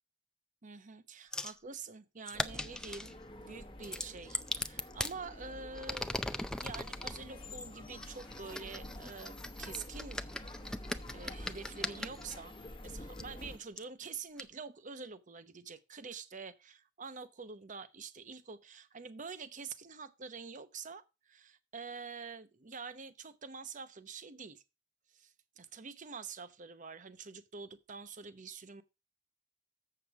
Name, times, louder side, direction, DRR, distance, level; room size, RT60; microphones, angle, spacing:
voice 1, 0.6-6.1 6.6-10.2 11.1-12.6 12.8-24.6 25.1-28.8, right 5 dB, 40° right, 0.8 m, -47 dB
sound 1, 1.3-1.6 2.3-3.1 3.8-5.2 5.7-7.2 8.0-12.4 13.2-13.3 13.8-13.9 14.4-14.5, left 1 dB, 5° left, 0.4 m, -39 dB
sound 2, 2.3-13.6, left 1 dB, 25° left, 1.2 m, -48 dB
7.6 x 6.9 x 4.6 m
head